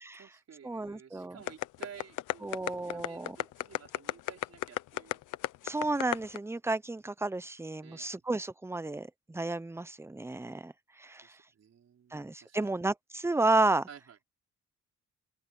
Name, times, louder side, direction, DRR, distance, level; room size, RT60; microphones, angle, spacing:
voice 1, 0.1-5.2 7.8-8.1 11.2-12.7 13.9-14.2, right 8 dB, 55° right, 4.9 m, -53 dB
voice 2, 0.6-1.4 2.4-3.4 5.6-10.7 11.0-11.2 12.1-13.9, right 2 dB, 10° right, 0.9 m, -32 dB
sound 1, 1.5-6.4, left 16 dB, 90° left, 1.0 m, -32 dB
open air
cardioid pair, 90°, 30 cm